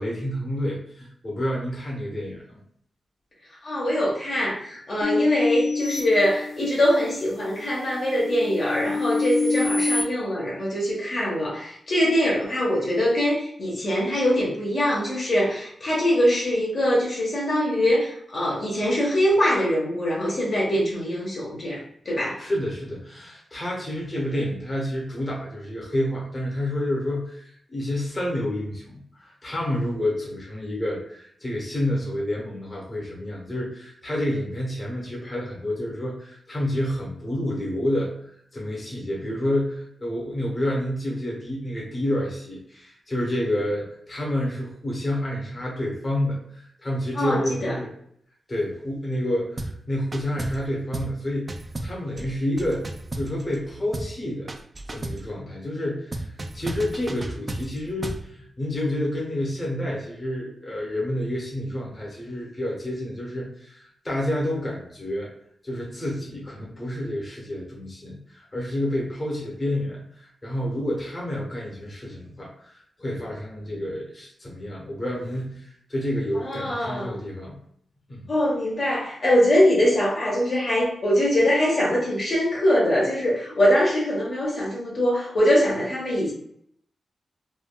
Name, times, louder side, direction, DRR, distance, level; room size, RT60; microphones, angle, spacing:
voice 1, 0.0-2.6 22.4-47.9 48.5-51.5 51.8-52.8 53.1-54.5 54.9-65.3 65.6-77.6 78.1-78.3, left 1 dB, 35° left, -3 dB, 0.9 m, -29 dB
voice 2, 3.6-21.8 22.0-22.4 47.2-47.7 76.4-77.2 78.3-86.3, equal, 60° left, -5 dB, 0.9 m, -23 dB
sound 1, 5.0-7.0 7.5-10.0, left 3 dB, 75° left, 0.5 m, -26 dB
sound 2, 49.6-49.8 50.1-50.7 50.9-51.2 51.5-53.6 53.9-54.2 54.5-55.3 56.1-58.3, right 2 dB, 35° right, 0.3 m, -33 dB
3.4 x 2.2 x 2.2 m, 0.68 s
cardioid pair, 80°, 0 cm